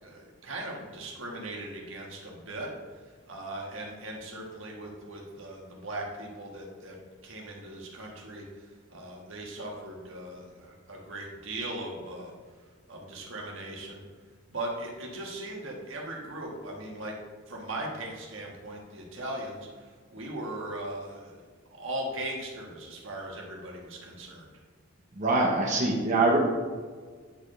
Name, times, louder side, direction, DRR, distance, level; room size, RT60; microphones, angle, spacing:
voice 1, 0.0-6.9 7.2-12.3 12.9-14.0 14.5-17.1 17.5-24.5, right 1 dB, 75° right, -1 dB, 1.5 m, -39 dB
voice 2, 25.1-26.4, right 2 dB, 40° right, -3 dB, 0.9 m, -24 dB
9.6 x 4.4 x 3.3 m, 1.6 s
head